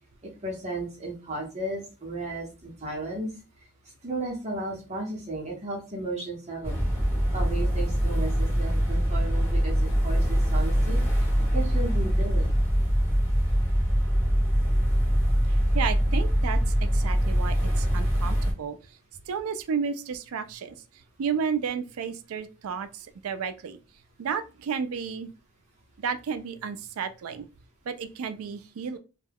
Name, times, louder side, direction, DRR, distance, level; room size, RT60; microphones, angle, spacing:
voice 1, 0.4-3.3 4.0-6.8 7.3-11.0 11.4-12.6, right 2 dB, 30° right, 0.8 m, -34 dB
sound 1, 6.6-18.5, equal, 10° left, 1.0 m, -23 dB
voice 2, 15.5-19.0 19.3-20.8 21.2-23.8 24.2-25.3 26.0-27.5 27.9-29.0, right 6 dB, 75° right, 0.4 m, -32 dB
2.2 x 2.2 x 3.3 m
head